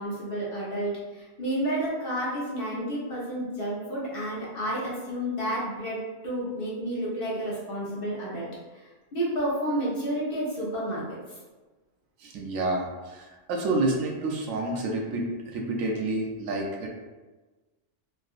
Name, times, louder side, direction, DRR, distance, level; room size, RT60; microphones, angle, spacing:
voice 1, 0.0-8.5 9.1-11.4, right 1 dB, 50° left, -7 dB, 1.0 m, -30 dB
voice 2, 12.2-16.9, right 2 dB, 85° right, -1 dB, 1.0 m, -29 dB
3.6 x 2.4 x 2.4 m, 1.2 s
omnidirectional pair, 1.3 m